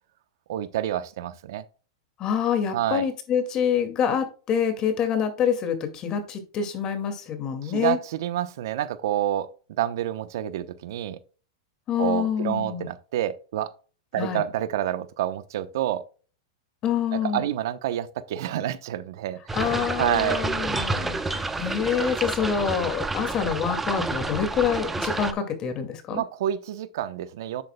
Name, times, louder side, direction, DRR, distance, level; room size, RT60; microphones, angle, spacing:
voice 1, 0.5-1.6 2.7-3.0 7.6-9.5 9.8-11.2 12.0-13.7 14.1-16.0 17.1-20.4 26.1-27.6, right 12 dB, 65° right, 0.9 m, -28 dB
voice 2, 2.2-8.0 11.9-12.9 14.2-14.4 16.8-17.4 19.5-26.2, left 8 dB, 30° left, 2.2 m, -26 dB
sound 1, 19.5-25.3, right 3 dB, 10° right, 0.8 m, -29 dB
9.8 x 8.4 x 2.3 m
hypercardioid pair, 135°, 2 cm